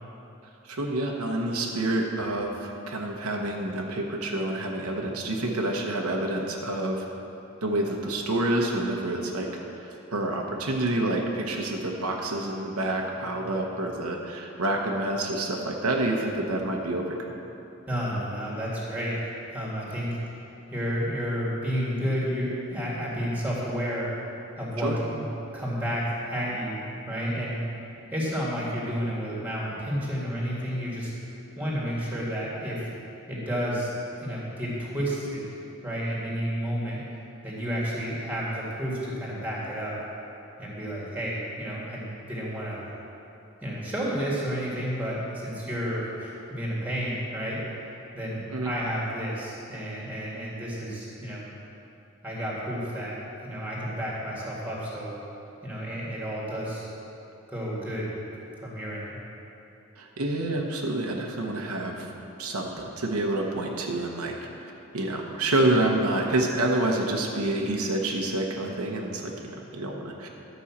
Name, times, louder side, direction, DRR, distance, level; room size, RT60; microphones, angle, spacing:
voice 1, 0.6-7.1 7.6-9.5 9.7-17.3 24.8-25.0 48.5-48.7 60.0-62.1 62.4-64.4 64.9-70.3, right 1 dB, 85° right, 1 dB, 1.1 m, -28 dB
voice 2, 17.9-20.2 20.7-24.1 24.6-25.2 25.5-27.6 28.1-31.1 31.6-32.9 33.3-33.9 34.2-35.5 35.8-37.1 37.4-40.0 40.6-42.8 43.6-47.6 48.1-51.4 52.2-55.1 55.6-56.9 57.5-58.1 58.6-59.2, equal, 10° right, -5 dB, 2.1 m, -31 dB
11.5 x 5.5 x 7.2 m, 2.9 s
head